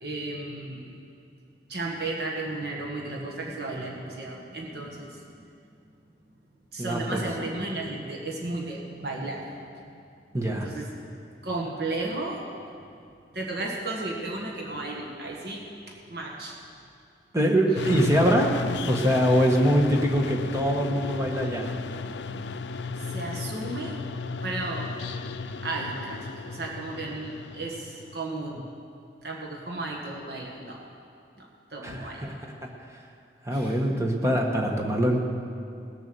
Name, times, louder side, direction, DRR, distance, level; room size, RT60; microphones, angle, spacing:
voice 1, 0.0-1.0 1.7-5.4 6.7-9.9 10.5-11.2 11.4-12.4 13.3-15.6 16.1-16.6 19.3-19.4 22.9-23.9 24.4-24.9 25.6-28.7 29.2-30.8 31.4-32.3 33.5-33.8, right 2 dB, 70° right, -1 dB, 1.6 m, -34 dB
voice 2, 6.8-7.2 10.3-10.7 17.3-18.5 18.8-21.7 31.8-32.3 32.6-32.7 33.4-35.2, equal, 15° right, 1 dB, 1.3 m, -23 dB
sound 1, 17.8-28.2, left 4 dB, 85° left, 0.5 m, -34 dB
18.5 x 7.1 x 6.8 m, 2.5 s
head